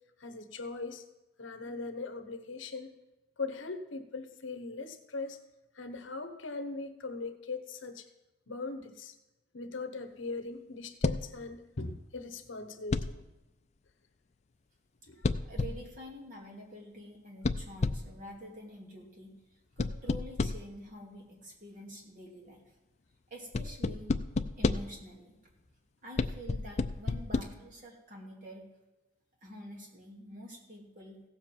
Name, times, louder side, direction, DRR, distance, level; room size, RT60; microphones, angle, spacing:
voice 1, 0.2-1.0 1.4-2.9 3.4-5.4 5.7-8.1 8.5-9.1 9.5-13.2 15.1-15.2, left 3 dB, 70° left, 8 dB, 1.0 m, -40 dB
sound 1, 11.0-11.4 12.9-13.3 15.2-15.9 17.4-18.2 19.8-20.8 23.5-25.0 26.2-27.4, left 3 dB, 35° left, 0.4 m, -31 dB
voice 2, 15.4-19.3 19.8-22.6 23.3-24.1 24.6-25.4 26.0-28.7 29.4-31.2, equal, 40° right, -1 dB, 2.6 m, -47 dB
16.0 x 7.2 x 4.5 m, 1.1 s
head